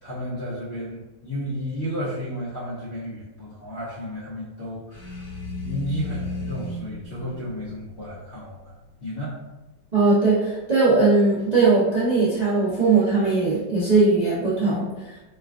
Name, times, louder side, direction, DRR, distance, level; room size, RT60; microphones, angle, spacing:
voice 1, 0.0-5.2 5.6-8.7 9.0-9.4, equal, 55° left, -8 dB, 0.8 m, -32 dB
sound 1, 4.9-8.8, left 2 dB, 85° left, 2.1 m, -35 dB
voice 2, 9.9-14.9, right 3 dB, 45° right, -10 dB, 0.5 m, -19 dB
4.3 x 2.3 x 2.4 m, 1.1 s
omnidirectional pair, 2.0 m